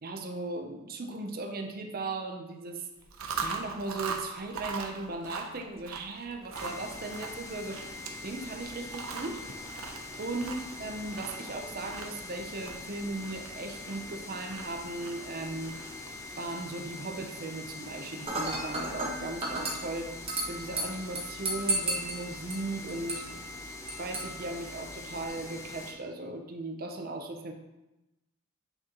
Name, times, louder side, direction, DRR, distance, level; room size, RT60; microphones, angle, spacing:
voice 1, 0.0-2.9 3.4-7.9 8.2-9.4 10.2-15.8 16.4-20.1 20.4-23.3 24.0-27.5, right 2 dB, 45° right, 4 dB, 0.7 m, -37 dB
Chewing mastication, 3.0-16.2, right 5 dB, 75° right, 0.8 m, -41 dB
sound 1, 6.5-25.9, left 2 dB, 15° left, 0.6 m, -43 dB
Dishes pots and pans / Glass, 18.3-25.3, right 1 dB, 25° right, 1.2 m, -35 dB
8.9 x 3.8 x 3.0 m, 0.99 s
head